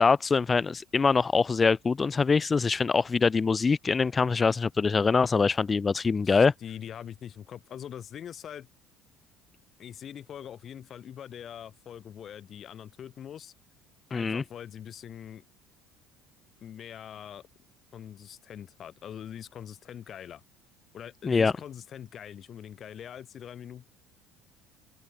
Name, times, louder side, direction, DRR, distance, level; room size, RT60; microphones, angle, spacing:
voice 1, 0.0-6.5 14.1-14.4 21.2-21.5, left 4 dB, 25° left, 1.3 m, -24 dB
voice 2, 6.2-8.7 9.8-13.5 14.1-15.5 16.6-17.4 17.9-20.4 20.9-23.9, left 9 dB, 45° left, 2.8 m, -43 dB
open air
supercardioid pair, 105°, 0 cm